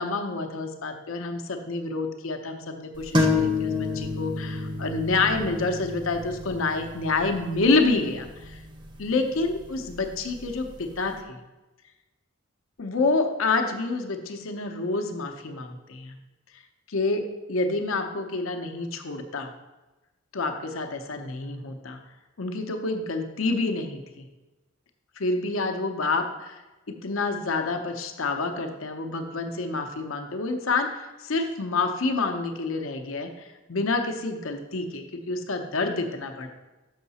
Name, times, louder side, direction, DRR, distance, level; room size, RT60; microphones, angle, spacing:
voice 1, 0.0-8.6 9.0-11.4 12.8-16.2 16.5-16.6 16.9-19.5 20.3-22.0 22.4-24.2 25.2-36.5, left 3 dB, 80° left, 5 dB, 0.8 m, -28 dB
sound 1, 3.1-10.6, left 3 dB, 25° right, 0.6 m, -30 dB
6.5 x 5.7 x 4.1 m, 1.1 s
head